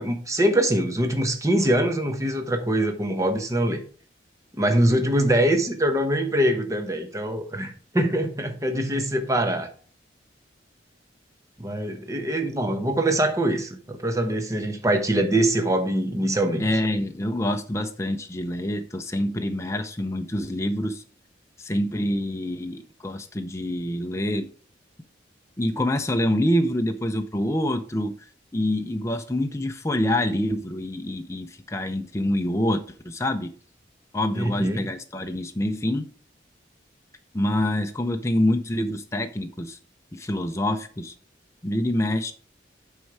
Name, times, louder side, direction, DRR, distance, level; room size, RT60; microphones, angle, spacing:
voice 1, 0.0-3.8 4.5-9.7 11.6-16.7 34.3-34.8, right 1 dB, 15° right, 6 dB, 0.9 m, -23 dB
voice 2, 16.6-21.0 21.6-24.5 25.6-33.5 34.1-36.1 37.3-39.8 40.1-41.1 41.6-42.3, left 1 dB, 15° left, 5 dB, 0.5 m, -26 dB
8.2 x 5.4 x 4.6 m, 0.43 s
head